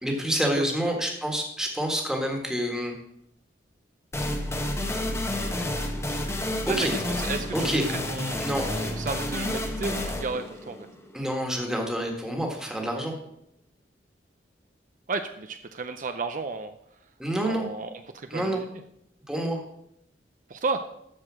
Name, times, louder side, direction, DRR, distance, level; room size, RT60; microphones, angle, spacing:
voice 1, 0.0-2.9 6.3-6.4 6.7-6.9 7.5-7.8 8.4-8.6 11.1-13.2 17.2-17.7 18.3-18.6 19.3-19.6, right 1 dB, 5° right, 1 dB, 1.7 m, -28 dB
voice 2, 0.5-1.0 6.7-7.8 8.1-10.9 15.1-16.7 17.4-18.6 20.5-20.8, right 4 dB, 45° right, 8 dB, 0.5 m, -33 dB
sound 1, 4.1-11.6, left 1 dB, 15° left, 1.1 m, -30 dB
13.0 x 4.8 x 6.2 m, 0.78 s
head